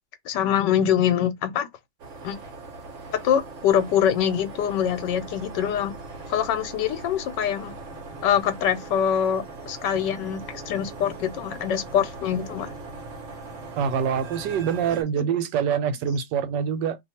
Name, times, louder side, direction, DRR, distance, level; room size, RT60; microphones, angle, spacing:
voice 1, 0.2-1.7 2.2-2.3 3.2-6.0 6.3-7.7 8.2-12.8, left 9 dB, 85° left, 1.3 m, -24 dB
sound 1, 2.0-15.0, right 3 dB, 55° right, 1.0 m, -40 dB
voice 2, 13.8-17.0, right 7 dB, 80° right, 1.3 m, -25 dB
2.9 x 2.3 x 4.2 m
omnidirectional pair, 1.8 m